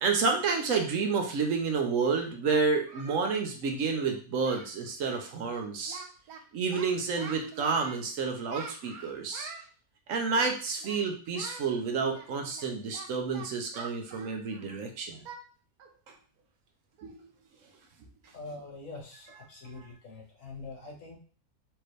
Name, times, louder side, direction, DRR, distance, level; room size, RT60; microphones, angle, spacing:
voice 1, 0.0-6.0 6.5-9.5 10.1-15.2 17.0-17.3, right 5 dB, 65° right, 3 dB, 1.0 m, -30 dB
Singing, 2.0-3.2 3.5-3.7 4.0-4.1 4.4-4.8 5.0-5.3 5.5-6.4 6.7-8.0 8.5-9.7 10.4-11.0 11.3-11.7 12.1-14.8 15.2-15.4 15.8-16.0 16.4-16.5 17.0-17.2, right 5 dB, 90° right, 1.2 m, -45 dB
voice 2, 18.3-21.1, left 3 dB, 60° left, -2 dB, 1.7 m, -44 dB
4.5 x 2.9 x 3.1 m, 0.39 s
omnidirectional pair, 1.5 m